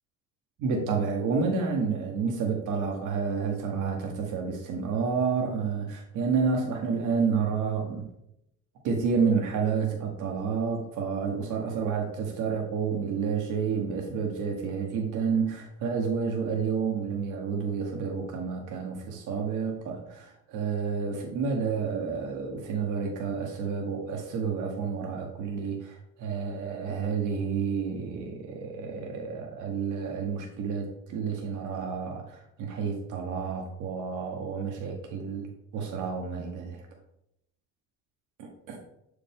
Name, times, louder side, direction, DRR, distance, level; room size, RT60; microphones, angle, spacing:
voice 1, 0.6-8.0 8.8-36.8 38.4-38.8, right 5 dB, 85° right, 1 dB, 1.0 m, -30 dB
6.6 x 4.9 x 3.5 m, 0.80 s
cardioid pair, 90°, 30 cm